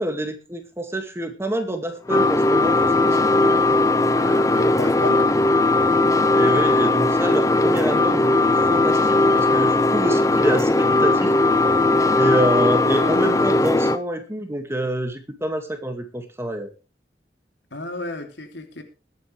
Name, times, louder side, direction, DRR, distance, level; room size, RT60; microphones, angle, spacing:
voice 1, 0.0-3.6 6.3-11.3 12.1-16.7, right 1 dB, 15° right, 6 dB, 2.3 m, -27 dB
sound 1, 2.1-14.0, left 2 dB, 20° left, 0.7 m, -18 dB
voice 2, 4.1-5.5 12.9-13.4 17.7-18.8, left 2 dB, 85° left, 5 dB, 3.1 m, -32 dB
21.0 x 9.4 x 3.5 m, 0.31 s
head